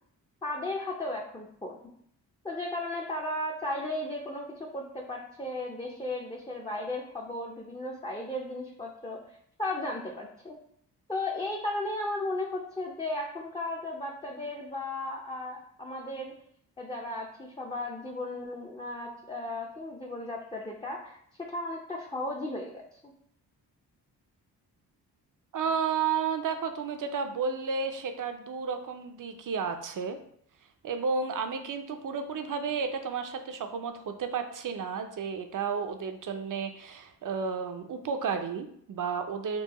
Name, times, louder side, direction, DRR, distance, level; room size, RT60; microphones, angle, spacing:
voice 1, 0.4-1.8 2.4-10.6 11.1-16.3 16.8-23.1, left 2 dB, 10° left, -2 dB, 0.6 m, -35 dB
voice 2, 25.5-30.2 30.8-39.6, right 5 dB, 50° right, 7 dB, 0.6 m, -32 dB
4.6 x 2.1 x 2.9 m, 0.66 s
supercardioid pair, 50°, 42 cm